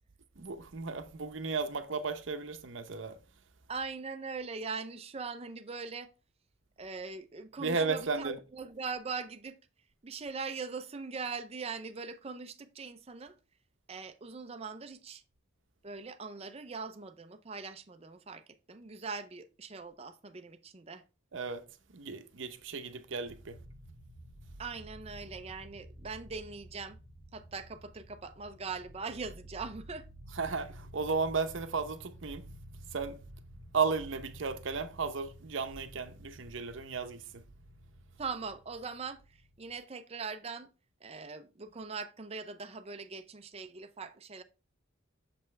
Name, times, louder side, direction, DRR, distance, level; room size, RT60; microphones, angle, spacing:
voice 1, 0.4-3.2 7.6-8.4 21.3-21.6 21.9-23.6 30.4-32.4 32.9-33.2 33.7-37.2, right 4 dB, 70° right, 0.8 m, -34 dB
voice 2, 3.7-6.1 6.8-9.6 10.0-13.3 13.9-15.2 15.8-21.0 24.6-27.0 27.3-30.1 30.5-30.6 38.2-40.7 41.0-44.4, right 4 dB, 30° right, 0.6 m, -41 dB
sound 1, 23.2-39.7, right 1 dB, 80° left, 2.4 m, -52 dB
6.9 x 5.5 x 3.2 m
head